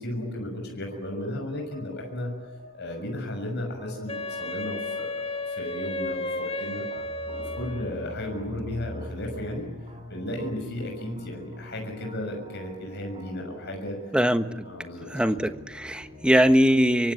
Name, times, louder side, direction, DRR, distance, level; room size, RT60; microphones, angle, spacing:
voice 1, 0.0-2.3 2.7-5.1 5.5-6.8 7.2-9.7 10.1-14.0 14.6-15.1, left 1 dB, 55° left, 2 dB, 6.5 m, -34 dB
sound 1, 0.9-16.5, left 1 dB, 30° right, 5.1 m, -45 dB
Wind instrument woodwind instrument, 4.1-8.2, left 2 dB, 30° left, 1.8 m, -33 dB
voice 2, 14.1-14.5 15.1-17.1, equal, 5° right, 8 dB, 1.3 m, -21 dB
27.5 x 24.0 x 8.5 m, 1.1 s
head